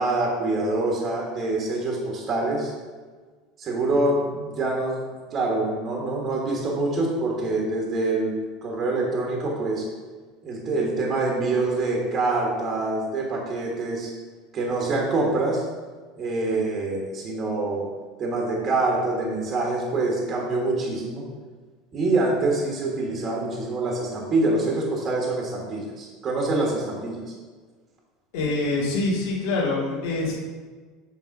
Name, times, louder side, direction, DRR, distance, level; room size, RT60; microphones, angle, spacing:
voice 1, 0.0-2.7 3.6-5.0 5.3-8.3 8.6-9.8 10.4-14.1 14.5-15.6 16.2-17.9 18.2-21.3 21.9-27.2, right 2 dB, 25° right, -1 dB, 1.5 m, -25 dB
voice 2, 28.3-30.3, left 2 dB, 65° left, -5 dB, 2.2 m, -25 dB
7.9 x 4.6 x 5.9 m, 1.5 s
cardioid pair, 160°, 0 cm